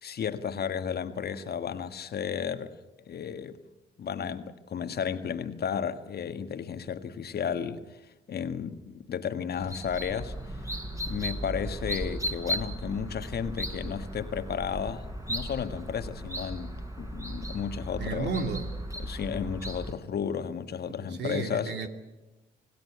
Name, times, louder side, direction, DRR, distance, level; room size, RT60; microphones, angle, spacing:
voice 1, 0.0-3.6 4.0-10.3 11.1-18.3 19.0-21.7, left 7 dB, 55° left, 1.6 m, -33 dB
sound 1, 9.6-19.9, equal, 15° right, 4.9 m, -36 dB
voice 2, 18.0-18.7 21.2-21.9, right 4 dB, 60° right, 2.5 m, -32 dB
26.5 x 18.5 x 8.5 m
hypercardioid pair, 45°, 20 cm